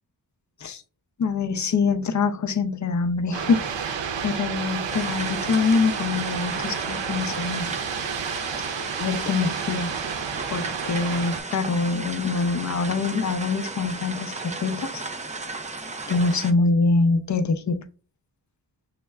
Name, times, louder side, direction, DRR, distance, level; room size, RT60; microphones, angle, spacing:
voice 1, 1.2-7.7 9.0-9.9 10.5-15.0 16.1-17.8, left 4 dB, 45° left, 0.5 m, -24 dB
sound 1, 3.3-11.4, right 7 dB, 80° right, 0.6 m, -31 dB
sound 2, 4.9-16.5, right 3 dB, 20° right, 0.3 m, -35 dB
6.1 x 2.1 x 2.2 m
cardioid pair, 60°, 43 cm